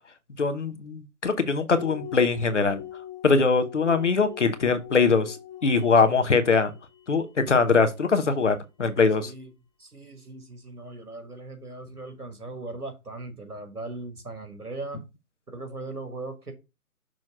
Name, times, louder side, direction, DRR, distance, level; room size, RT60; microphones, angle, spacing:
voice 1, 0.4-2.8 3.2-5.4 5.6-6.7 7.1-9.3, left 4 dB, 50° left, 0.9 m, -22 dB
sound 1, 1.7-8.1, left 12 dB, 25° left, 1.4 m, -42 dB
voice 2, 9.2-9.5 9.8-15.0 15.5-16.5, right 2 dB, 90° right, 1.9 m, -39 dB
6.3 x 3.1 x 5.0 m
figure-of-eight pair, 155°, 45 cm